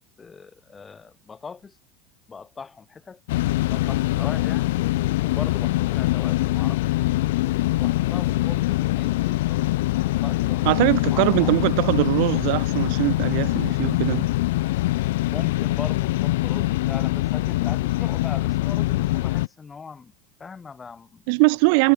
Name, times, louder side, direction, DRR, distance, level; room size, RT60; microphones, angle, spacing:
voice 1, 0.0-1.8 2.3-3.2 3.7-4.8 5.2-7.2 7.7-11.8 15.2-20.1 20.4-21.4 21.8-21.9, left 5 dB, 15° left, 2.2 m, -40 dB
sound 1, 3.3-19.5, left 18 dB, 85° left, 0.8 m, -23 dB
voice 2, 10.6-14.3 21.3-21.9, right 35 dB, 65° right, 1.2 m, -21 dB
supercardioid pair, 145°, 0 cm